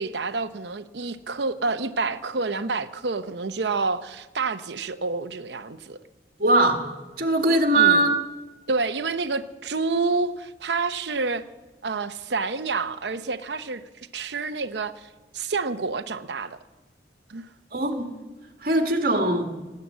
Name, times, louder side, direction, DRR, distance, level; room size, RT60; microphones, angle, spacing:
voice 1, 0.0-6.0 7.8-8.0 8.7-11.4 11.8-15.1 15.3-16.6 17.3-17.5, right 4 dB, 80° right, 0.8 m, -28 dB
voice 2, 6.4-6.8 7.2-8.2 17.7-18.1 18.6-19.5, right 2 dB, 55° right, 1.8 m, -20 dB
19.0 x 8.6 x 8.5 m
head